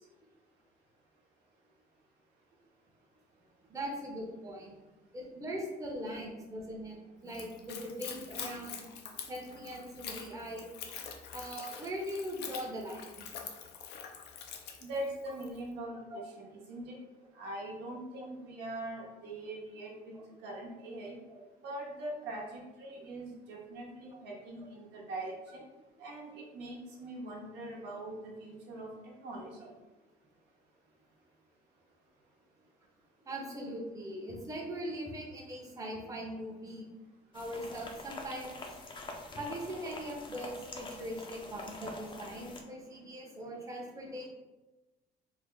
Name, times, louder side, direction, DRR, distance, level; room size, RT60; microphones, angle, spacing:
voice 1, 3.7-4.8 5.1-7.0 7.2-8.9 9.3-10.7 11.3-13.3 16.1-16.2 18.2-18.3 20.1-20.2 21.3-21.4 33.3-36.9 37.3-38.6 39.4-44.3, equal, 20° right, -1 dB, 0.7 m, -40 dB
Splash splatter / Trickle dribble, 7.3-15.6, left 7 dB, 80° left, 0.5 m, -45 dB
voice 2, 14.8-17.0 17.3-20.1 20.4-21.2 21.6-25.6 26.0-28.9 29.2-29.7, right 1 dB, 85° right, -3 dB, 0.9 m, -42 dB
sound 1, 37.3-42.6, left 2 dB, 30° left, 0.5 m, -45 dB
3.2 x 2.1 x 3.7 m, 1.1 s
cardioid pair, 110°, 17 cm